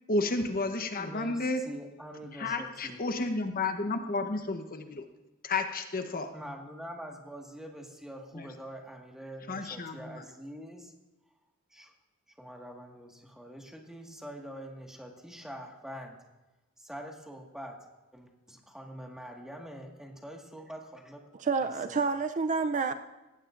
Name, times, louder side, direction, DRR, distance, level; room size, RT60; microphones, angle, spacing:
voice 1, 0.1-1.6 2.3-5.0 5.4-6.3 8.3-8.5 9.5-10.2, left 2 dB, 45° left, 7 dB, 1.0 m, -32 dB
voice 2, 1.0-3.0 6.3-10.9 11.7-11.9 12.4-16.2 16.8-21.3 21.6-22.0, equal, 5° right, 0 dB, 1.7 m, -45 dB
voice 3, 21.4-22.9, right 4 dB, 35° right, 9 dB, 0.4 m, -28 dB
18.5 x 16.0 x 2.6 m, 1.1 s
head